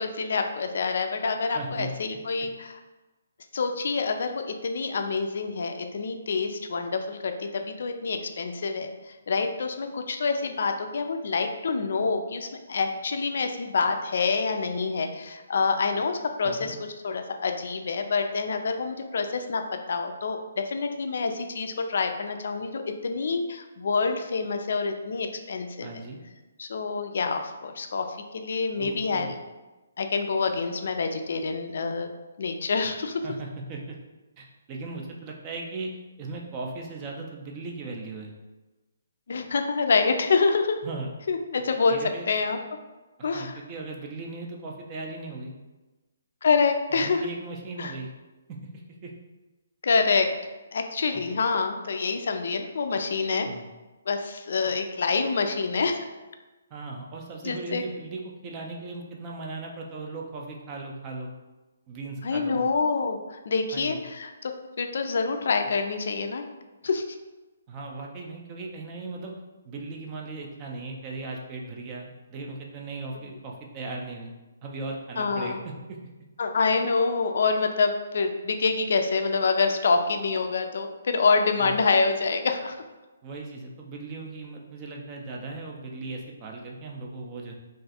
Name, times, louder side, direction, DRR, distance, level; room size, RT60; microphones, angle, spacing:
voice 1, 0.0-2.8 3.5-8.9 9.3-16.8 17.0-25.9 26.6-28.1 28.4-29.3 30.0-32.1 32.4-33.2 39.3-40.8 41.3-42.0 42.3-42.6 43.2-43.5 46.4-47.2 47.8-47.9 49.8-50.3 50.7-53.5 54.1-56.1 57.4-57.8 62.2-64.5 64.8-66.5 66.8-67.0 75.2-75.6 76.4-82.7, left 4 dB, 60° left, 6 dB, 0.3 m, -26 dB
voice 2, 1.5-1.9 16.4-16.8 25.8-26.2 28.8-29.3 33.2-34.0 34.4-38.3 40.8-41.1 41.9-42.3 43.3-45.5 46.9-48.1 48.5-49.1 51.1-51.4 53.4-53.6 54.6-54.7 56.7-61.3 61.9-62.6 63.7-64.0 67.7-69.3 69.6-74.3 74.6-76.0 81.6-81.8 83.2-87.5, right 3 dB, 25° right, 0 dB, 0.4 m, -38 dB
2.5 x 2.4 x 4.0 m, 1.1 s
hypercardioid pair, 160°, 0 cm